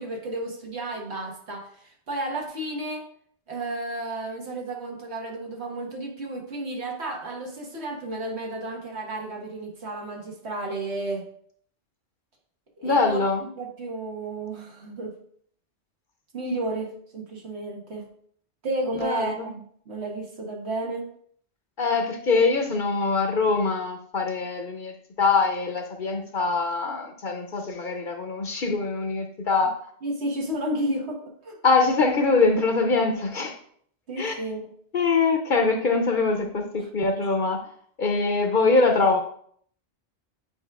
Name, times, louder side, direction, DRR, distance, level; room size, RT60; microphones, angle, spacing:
voice 1, 0.0-3.0 3.5-11.2 12.8-15.1 16.3-18.1 18.6-21.1 30.0-31.2 31.4-31.6 34.1-34.6 37.2-37.4, right 1 dB, 65° right, 0 dB, 1.6 m, -32 dB
voice 2, 12.8-13.4 18.9-19.5 21.8-29.8 31.6-33.6 34.2-34.4 34.9-37.6 38.0-39.2, left 4 dB, 50° left, 3 dB, 0.8 m, -23 dB
8.9 x 4.9 x 2.3 m, 0.62 s
omnidirectional pair, 1.2 m